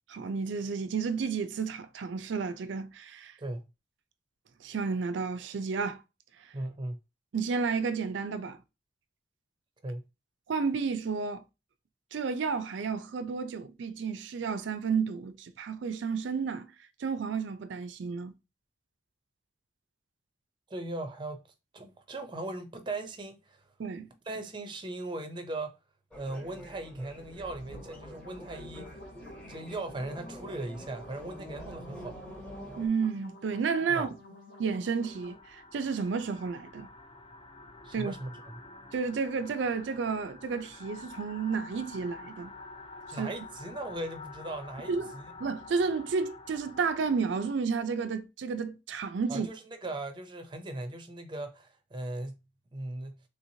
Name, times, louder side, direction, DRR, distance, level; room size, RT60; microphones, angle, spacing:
voice 1, 0.1-3.3 4.6-6.0 7.3-8.6 10.5-11.4 12.1-16.7 17.0-18.3 23.8-24.1 32.8-34.1 34.6-36.9 37.9-38.1 38.9-42.5 43.2-43.3 44.9-45.1 45.4-49.5, right 5 dB, 75° right, 0.4 m, -31 dB
voice 2, 6.5-7.0 9.8-10.1 20.7-21.4 21.7-23.6 24.3-25.8 26.1-29.0 29.5-32.2 33.9-34.1 37.8-38.6 43.1-45.3 49.3-52.4 52.7-53.2, right 2 dB, 25° right, 0.5 m, -38 dB
sound 1, 26.1-32.9, equal, 5° left, 0.7 m, -46 dB
sound 2, 27.4-35.3, equal, 70° left, 1.1 m, -52 dB
sound 3, 35.0-47.5, left 3 dB, 30° left, 0.4 m, -48 dB
3.4 x 2.9 x 2.7 m
head